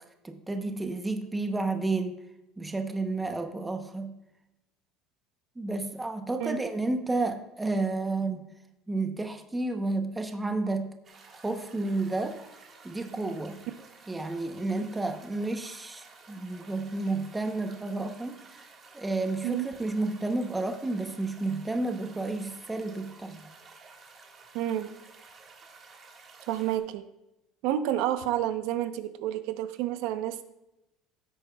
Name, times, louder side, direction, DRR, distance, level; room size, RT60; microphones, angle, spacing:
voice 1, 0.2-2.1 2.6-4.1 5.6-8.5 8.9-10.9 11.4-12.4 12.8-13.6 14.1-18.7 18.9-23.4, right 2 dB, 10° right, 6 dB, 0.7 m, -31 dB
sound 1, 11.0-26.8, right 4 dB, 25° right, 1.6 m, -53 dB
voice 2, 24.5-24.9 26.5-27.0 27.6-30.4, right 12 dB, 65° right, 10 dB, 0.7 m, -29 dB
16.5 x 8.6 x 2.3 m, 0.93 s
cardioid pair, 170°, 0 cm